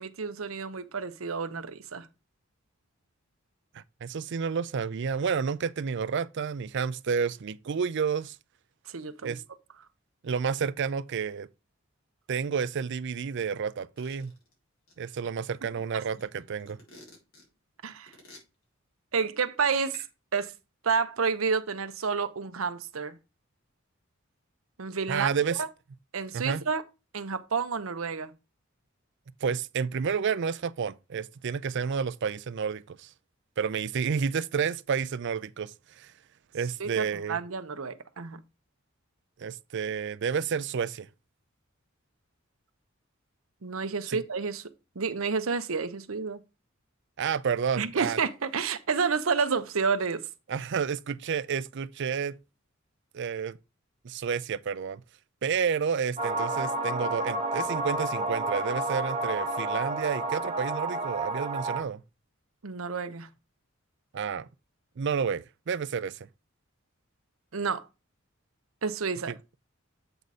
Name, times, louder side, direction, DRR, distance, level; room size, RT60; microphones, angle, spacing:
voice 1, 0.0-2.1 8.9-9.4 17.8-18.1 19.1-20.0 20.3-20.5 20.8-23.2 24.8-25.3 25.6-25.7 26.1-26.8 27.1-28.3 36.8-38.4 43.6-44.6 45.0-46.4 47.8-50.2 62.6-63.3 67.5-67.9 68.8-69.3, right 5 dB, 85° right, 0.8 m, -30 dB
voice 2, 3.7-8.4 9.2-9.4 10.2-11.5 12.3-14.3 15.0-16.8 25.1-25.6 26.3-26.6 29.4-33.1 33.6-36.1 36.5-37.4 39.4-41.1 44.1-44.2 47.2-48.2 50.5-52.3 53.1-53.6 54.0-55.0 55.4-62.0 64.1-64.5 65.0-66.3 69.3-69.4, right 6 dB, 60° right, 0.5 m, -30 dB
sound 1, 14.0-14.5 14.9-15.0 15.4-17.5 18.1-18.4 19.7-20.1, left 2 dB, 85° left, 3.8 m, -51 dB
sound 2, 56.2-61.8, right 2 dB, 30° right, 1.3 m, -30 dB
8.0 x 4.1 x 4.7 m
head